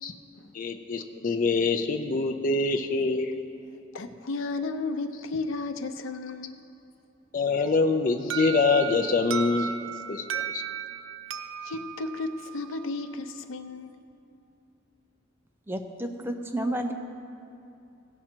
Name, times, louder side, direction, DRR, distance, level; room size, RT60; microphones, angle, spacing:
voice 1, 0.5-3.3 7.3-9.7 10.1-10.6, left 4 dB, 45° left, 5 dB, 0.4 m, -25 dB
voice 2, 3.9-6.6 11.6-13.9, left 3 dB, 85° left, 8 dB, 0.6 m, -33 dB
Alarm, 8.3-13.1, right 9 dB, 85° right, 0.4 m, -35 dB
voice 3, 15.7-16.9, right 1 dB, 10° right, 4 dB, 0.5 m, -31 dB
16.5 x 6.1 x 4.4 m, 2.7 s
head